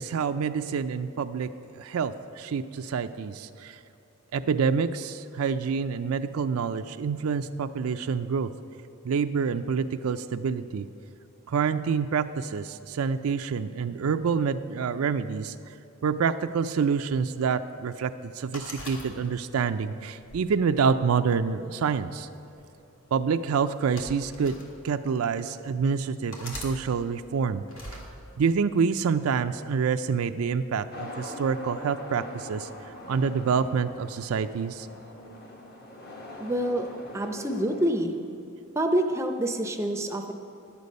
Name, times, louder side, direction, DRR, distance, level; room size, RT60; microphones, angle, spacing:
voice 1, 0.0-3.8 4.3-8.5 9.0-10.9 11.5-15.5 16.0-22.3 23.1-24.6 24.8-27.6 28.4-32.7 33.1-34.9, right 6 dB, 85° right, 9 dB, 0.4 m, -27 dB
sound 1, 18.5-19.6 20.2-21.4 22.3-22.6 23.6-24.7 25.4-25.5 26.3-26.7 27.7-28.1, left 1 dB, 75° left, 1.9 m, -41 dB
sound 2, 30.9-37.9, left 1 dB, 45° left, 1.1 m, -42 dB
voice 2, 36.4-36.9 37.1-38.2 38.8-40.3, right 1 dB, 15° right, 5 dB, 0.5 m, -27 dB
11.5 x 8.2 x 5.2 m, 2.9 s
head